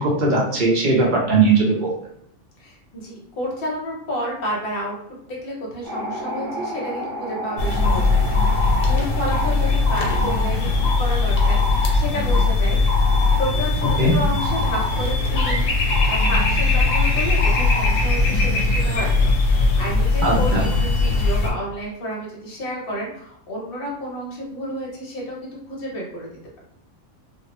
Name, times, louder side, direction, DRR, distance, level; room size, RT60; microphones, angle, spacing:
voice 1, 0.0-1.9 14.0-14.1 20.2-20.6, right 3 dB, 50° right, -3 dB, 0.6 m, -18 dB
voice 2, 2.6-15.7 16.1-26.3, equal, 50° left, -3 dB, 0.9 m, -31 dB
sound 1, 5.8-15.3 15.5-15.6, equal, 70° right, 1.0 m, -35 dB
sound 2, 7.6-21.5, left 3 dB, 75° left, 0.9 m, -19 dB
2.4 x 2.0 x 2.8 m, 0.70 s
omnidirectional pair, 1.4 m